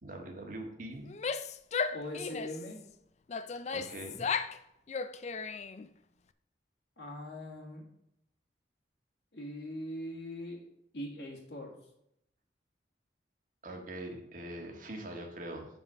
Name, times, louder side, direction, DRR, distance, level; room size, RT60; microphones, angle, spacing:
voice 1, 0.0-1.1 3.7-4.3 13.6-15.7, right 1 dB, 45° right, 2 dB, 1.7 m, -42 dB
Female speech woman speaking / Yell, 1.0-2.7 3.3-4.6 4.9-5.9, left 5 dB, 35° left, 0.4 m, -35 dB
voice 2, 1.9-2.8 7.0-7.9 9.3-10.6 10.9-11.7, left 1 dB, 65° left, -2 dB, 1.8 m, -41 dB
7.4 x 5.4 x 6.3 m, 0.78 s
head